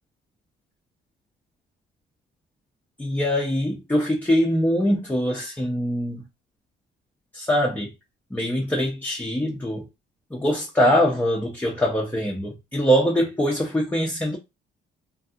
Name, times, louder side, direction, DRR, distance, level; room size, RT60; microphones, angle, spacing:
voice 1, 3.0-6.2 7.3-7.9 8.3-9.9 10.3-14.4, equal, 10° left, 0.6 m, -23 dB
2.6 x 2.6 x 2.4 m
cardioid pair, 90°, 20 cm